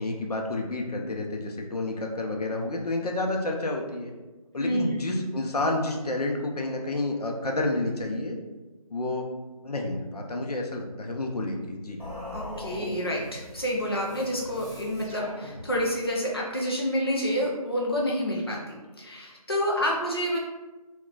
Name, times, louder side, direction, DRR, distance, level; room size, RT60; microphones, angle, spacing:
voice 1, 0.0-4.1 4.5-8.4 8.9-9.2 9.6-12.0, left 2 dB, 80° left, 1 dB, 0.6 m, -30 dB
voice 2, 4.6-5.2 12.3-18.6 19.0-20.4, equal, 40° left, -3 dB, 0.4 m, -28 dB
sound 1, 12.0-16.1, left 1 dB, 15° left, 1.1 m, -41 dB
3.8 x 2.3 x 2.3 m, 1.1 s
figure-of-eight pair, 180°, 19 cm